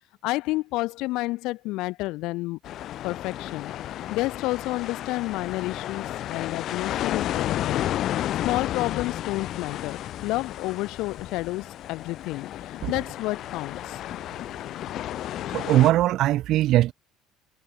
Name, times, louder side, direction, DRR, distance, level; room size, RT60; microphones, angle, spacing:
voice 1, 0.2-2.6 3.0-3.7 4.1-7.9 8.4-14.0, left 20 dB, 65° left, 1.5 m, -30 dB
sound 1, 2.6-15.9, left 12 dB, 45° left, 0.6 m, -32 dB
voice 2, 15.5-16.9, right 14 dB, 50° right, 1.5 m, -20 dB
cardioid pair, 155°, 0 cm